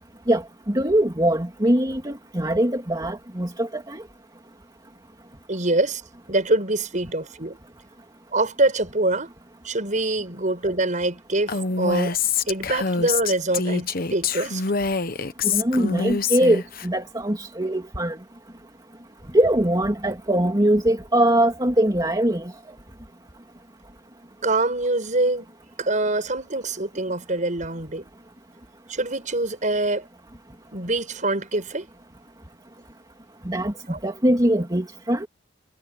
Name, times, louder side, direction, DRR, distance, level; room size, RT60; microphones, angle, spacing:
voice 1, 0.3-4.0 15.4-18.2 19.3-22.5 33.4-33.7 34.0-35.3, right 1 dB, 20° right, 2.9 m, -22 dB
voice 2, 5.5-6.0 6.3-7.6 8.3-9.3 9.6-12.2 12.5-14.6 24.4-25.5 25.8-28.1 28.9-30.1 30.7-31.9 33.9-34.0, right 2 dB, 45° right, 6.1 m, -24 dB
Female speech woman speaking, 11.5-16.9, left 5 dB, 50° left, 1.0 m, -25 dB
head